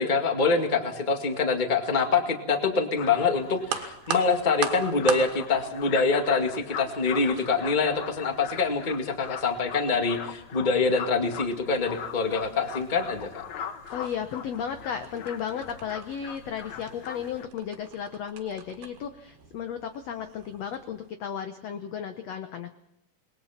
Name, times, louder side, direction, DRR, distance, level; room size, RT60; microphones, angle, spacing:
voice 1, 0.0-13.4, left 4 dB, 25° left, 5 dB, 1.0 m, -25 dB
sound 1, 3.0-17.5, left 8 dB, 60° left, 2.2 m, -40 dB
sound 2, 3.6-21.1, right 9 dB, 80° right, 3.7 m, -42 dB
voice 2, 13.9-22.7, left 8 dB, 80° left, 8 dB, 1.4 m, -34 dB
27.0 x 21.0 x 5.8 m, 0.81 s
omnidirectional pair, 4.4 m